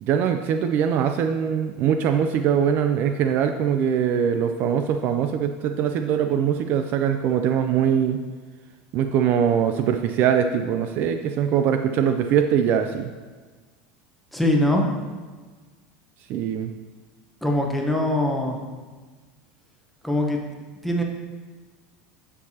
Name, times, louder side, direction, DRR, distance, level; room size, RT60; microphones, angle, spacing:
voice 1, 0.0-8.2 8.9-13.1 16.3-16.7, right 8 dB, 45° right, 7 dB, 0.3 m, -22 dB
voice 2, 14.3-14.9 17.4-18.6 20.0-20.4 20.8-21.0, left 1 dB, ahead, 0 dB, 0.9 m, -22 dB
12.0 x 4.5 x 2.8 m, 1.4 s
supercardioid pair, 145°, 5 cm